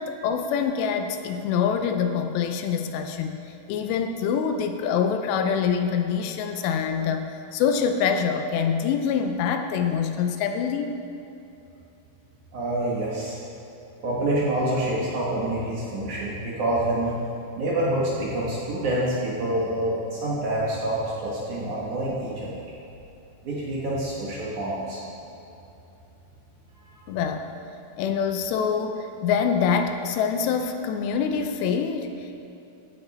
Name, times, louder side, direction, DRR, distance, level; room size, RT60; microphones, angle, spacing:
voice 1, 0.0-3.4 3.7-11.0 27.1-27.5 28.0-32.4, left 6 dB, 80° left, 6 dB, 2.8 m, -25 dB
voice 2, 12.5-13.4 14.0-17.2 17.5-22.5 23.4-25.0 26.9-27.0, right 1 dB, 55° right, -6 dB, 2.6 m, -27 dB
15.0 x 8.1 x 4.3 m, 2.9 s
omnidirectional pair, 5.0 m